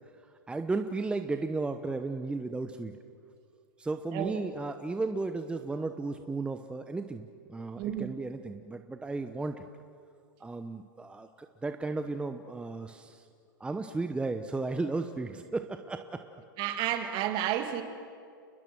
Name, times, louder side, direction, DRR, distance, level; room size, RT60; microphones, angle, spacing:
voice 1, 0.5-2.9 3.8-9.6 10.4-13.3 13.6-16.2, right 3 dB, 10° right, 7 dB, 1.0 m, -34 dB
voice 2, 7.8-8.2 16.6-17.8, right 11 dB, 45° right, 7 dB, 2.6 m, -31 dB
30.0 x 21.5 x 6.2 m, 2.3 s
hypercardioid pair, 105°, 11 cm